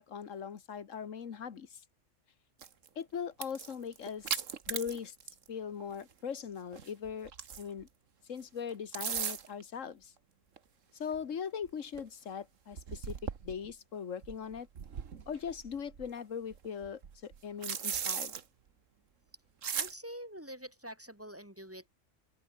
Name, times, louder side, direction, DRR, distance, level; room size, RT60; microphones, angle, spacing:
voice 1, 0.0-1.8 2.9-5.1 5.5-7.3 7.6-7.9 8.3-10.1 10.9-13.2 13.4-14.7 15.3-18.3, left 7 dB, 75° left, 1.7 m, -40 dB
sound 1, 2.6-2.9 3.3-5.5 5.8-5.9 6.7-7.8 8.7-9.6 10.6-10.7 11.1-11.2 11.6-11.7 11.9-12.0 12.7-13.7 14.2-16.1 16.5-18.4 19.6-19.9, right 7 dB, 75° right, 1.7 m, -38 dB
voice 2, 19.7-21.9, equal, 10° right, 3.4 m, -46 dB
open air
omnidirectional pair, 1.3 m